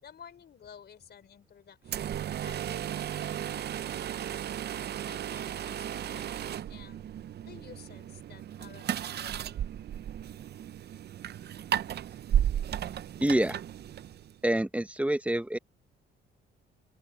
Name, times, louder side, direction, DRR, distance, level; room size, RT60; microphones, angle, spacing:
voice 1, 0.0-2.1 2.4-4.1 5.1-7.0 7.4-9.6, left 8 dB, 55° left, 4.4 m, -53 dB
sound 1, 1.8-14.4, right 10 dB, 55° right, 0.7 m, -34 dB
voice 2, 13.2-13.6 14.4-15.6, right 1 dB, 5° right, 0.9 m, -27 dB
open air
cardioid pair, 90°, 20 cm